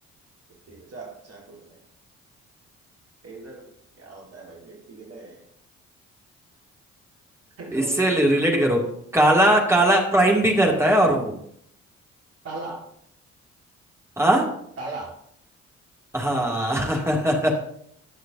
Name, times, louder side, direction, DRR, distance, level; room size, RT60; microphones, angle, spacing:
voice 1, 0.7-1.8 3.2-3.7 4.0-5.4 7.6-8.2 12.4-12.9 14.8-15.2, right 2 dB, 40° right, -1 dB, 1.8 m, -38 dB
voice 2, 7.7-8.8 9.1-11.4 14.2-14.5 16.1-17.5, right 1 dB, 5° right, -1 dB, 2.4 m, -19 dB
17.0 x 6.4 x 2.7 m, 0.69 s
figure-of-eight pair, 40°, 37 cm